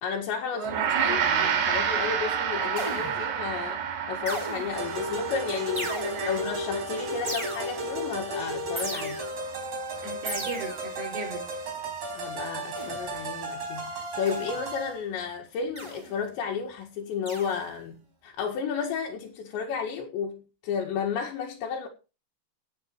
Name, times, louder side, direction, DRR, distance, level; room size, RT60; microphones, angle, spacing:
voice 1, 0.0-0.7 1.0-3.8 4.1-5.9 6.3-9.3 12.1-21.9, left 6 dB, 75° left, 4.1 m, -32 dB
voice 2, 0.5-1.5 5.9-6.4 10.0-11.5, right 4 dB, 65° right, 6.5 m, -36 dB
Gong, 0.6-10.0, right 8 dB, 85° right, 4.7 m, -30 dB
sound 1, 2.8-3.4 4.3-4.9 5.8-6.5 7.3-8.0 8.8-9.5 10.3-11.0 12.8-13.1 14.3-14.7 15.8-16.2 17.3-17.7, right 1 dB, 5° right, 2.6 m, -37 dB
sound 2, 4.7-15.0, right 1 dB, 40° right, 5.3 m, -34 dB
16.5 x 8.8 x 4.7 m
omnidirectional pair, 5.2 m